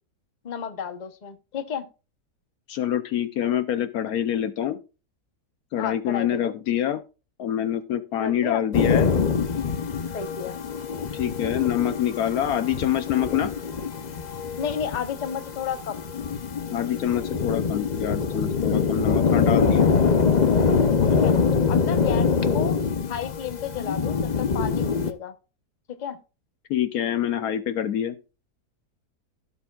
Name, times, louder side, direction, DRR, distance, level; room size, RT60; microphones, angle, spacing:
voice 1, 0.4-1.9 5.8-6.5 8.2-8.6 10.1-10.6 14.6-16.1 21.1-21.4 21.7-22.8 23.1-25.3 25.9-26.2, left 7 dB, 30° left, 9 dB, 0.9 m, -32 dB
voice 2, 2.7-4.8 5.7-7.0 7.4-9.1 11.1-13.5 16.7-19.9 26.7-28.1, left 10 dB, 70° left, 11 dB, 1.1 m, -26 dB
sound 1, 8.7-25.1, left 5 dB, 50° left, 0.5 m, -24 dB
16.5 x 7.1 x 2.4 m, 0.32 s
omnidirectional pair, 1.8 m